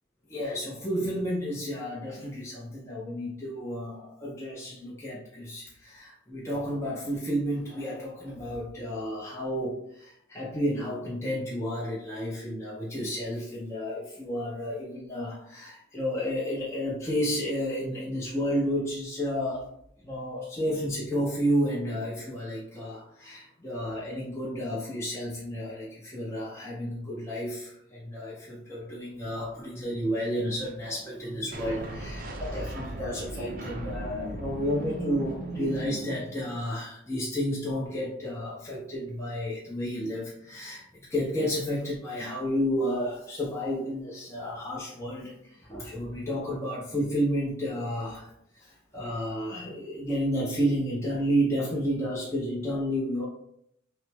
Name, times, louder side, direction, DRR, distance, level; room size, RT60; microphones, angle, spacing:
voice 1, 0.3-19.7 20.0-53.3, equal, 15° left, -6 dB, 0.6 m, -31 dB
sound 1, 31.5-36.7, right 1 dB, 40° right, 0.5 m, -37 dB
5.9 x 2.0 x 3.4 m, 0.75 s
head